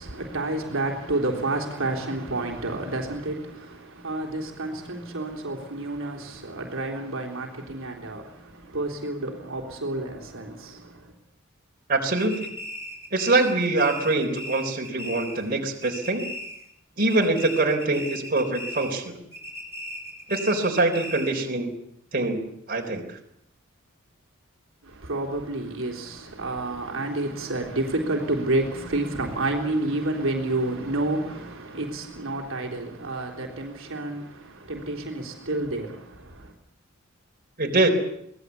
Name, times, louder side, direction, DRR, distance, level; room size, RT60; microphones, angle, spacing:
voice 1, 0.0-11.1 24.8-36.5, right 2 dB, 65° right, 3.6 m, -30 dB
voice 2, 11.9-12.5 13.1-16.3 17.0-19.2 20.3-21.7 22.1-22.4 22.7-23.2 37.6-37.9, right 2 dB, 40° right, 3.9 m, -24 dB
sound 1, 12.2-15.5 15.8-16.7 17.0-19.0 19.3-21.5, equal, 10° right, 7.1 m, -37 dB
24.5 x 18.5 x 8.3 m
head